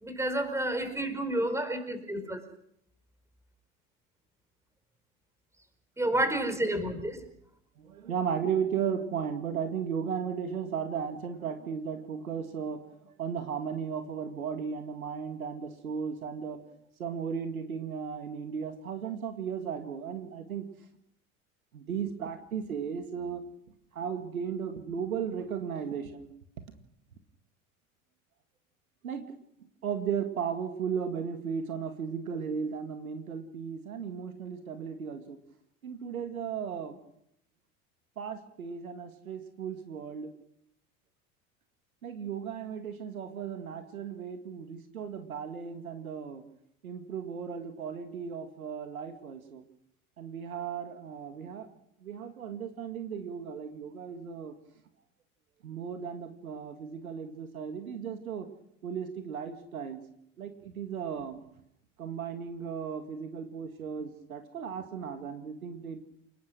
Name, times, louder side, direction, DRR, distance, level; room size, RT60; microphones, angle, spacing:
voice 1, 0.0-2.4 6.0-7.2, right 1 dB, 5° right, 9 dB, 4.6 m, -30 dB
voice 2, 7.8-16.6 17.0-20.7 21.7-23.4 23.9-26.3 29.0-29.2 29.8-35.4 35.8-37.0 38.2-40.3 42.0-46.4 46.8-49.6 50.2-51.7 52.0-54.5 55.6-58.5 58.8-60.0 60.4-61.4 62.0-66.0, right 7 dB, 75° right, 7 dB, 2.1 m, -35 dB
29.5 x 17.5 x 6.2 m, 0.74 s
figure-of-eight pair, 75°, 43 cm